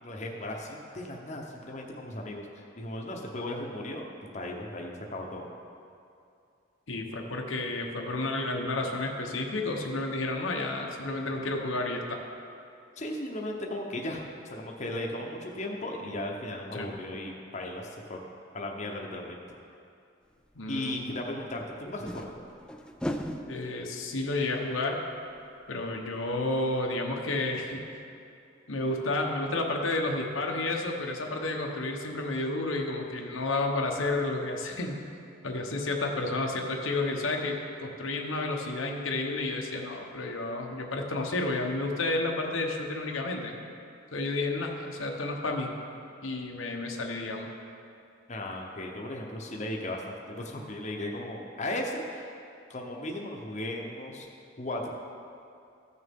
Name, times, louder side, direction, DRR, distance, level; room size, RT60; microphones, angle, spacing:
voice 1, 0.0-4.0 4.3-5.5 13.0-18.2 18.5-19.4 20.7-22.4 48.3-52.3 52.7-54.3 54.6-54.9, left 1 dB, 35° left, 0 dB, 0.8 m, -36 dB
voice 2, 6.9-12.2 16.7-16.9 20.5-21.1 23.5-25.0 25.7-27.8 28.7-35.0 35.4-43.5 44.1-45.7 46.2-47.5, left 2 dB, 90° left, 1 dB, 1.0 m, -31 dB
sound 1, 20.5-20.6 21.9-26.4 26.7-26.8 27.1-27.2, equal, 5° left, 0.3 m, -40 dB
15.0 x 6.6 x 3.6 m, 2.5 s
head